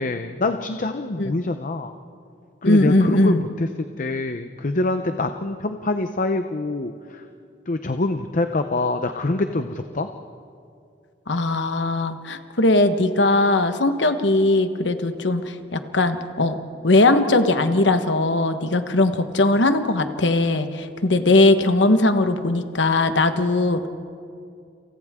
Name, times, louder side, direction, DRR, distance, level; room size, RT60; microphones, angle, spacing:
voice 1, 0.0-1.9 2.6-7.2 7.7-10.1, left 2 dB, 45° left, 8 dB, 0.7 m, -25 dB
voice 2, 2.6-3.5 11.3-16.6 16.8-23.9, left 2 dB, 85° left, 8 dB, 1.3 m, -19 dB
30.0 x 27.5 x 3.7 m, 2.4 s
head